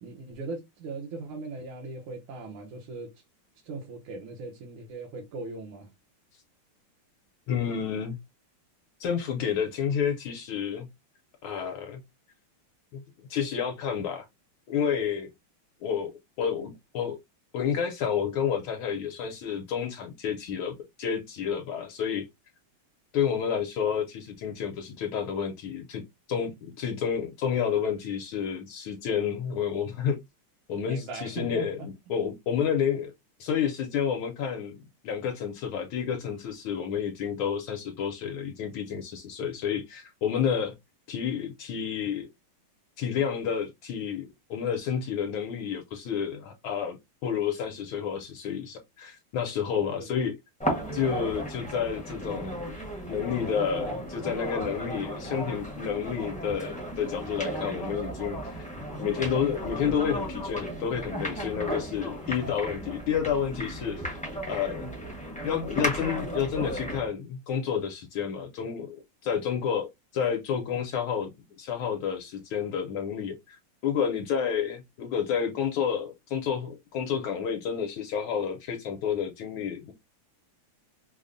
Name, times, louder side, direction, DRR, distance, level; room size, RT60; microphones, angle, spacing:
voice 1, 0.0-3.2 3.6-5.9 30.9-31.9 50.0-50.2 62.4-62.5, right 3 dB, 75° right, 1.7 m, -39 dB
voice 2, 7.5-8.2 9.0-10.9 11.4-12.0 12.9-13.0 13.3-14.3 14.7-15.3 15.8-16.1 16.4-17.2 17.5-20.7 21.0-22.3 23.1-26.0 26.3-30.2 30.7-33.1 33.4-40.7 41.1-42.3 43.0-47.0 47.2-50.3 50.9-52.6 53.1-58.7 58.9-64.9 65.4-71.3 71.6-79.9, left 7 dB, 75° left, 1.4 m, -30 dB
sound 1, 50.6-67.1, equal, 5° left, 0.5 m, -35 dB
5.2 x 2.1 x 2.5 m
omnidirectional pair, 2.4 m